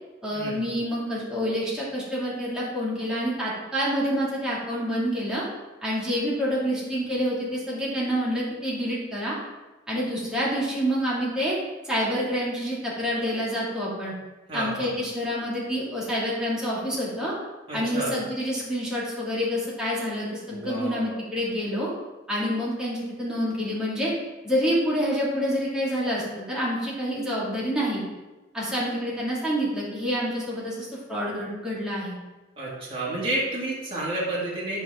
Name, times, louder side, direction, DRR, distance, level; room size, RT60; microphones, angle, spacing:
voice 1, 0.2-5.4 5.8-9.4 9.9-11.6 11.8-14.1 14.5-17.3 17.7-21.9 22.3-24.1 24.4-28.0 28.5-32.1, equal, 5° right, -8 dB, 2.6 m, -27 dB
voice 2, 14.5-14.9 17.7-18.1 20.5-21.2 32.6-34.8, right 1 dB, 30° right, -7 dB, 2.4 m, -30 dB
9.5 x 5.7 x 3.8 m, 1.1 s
head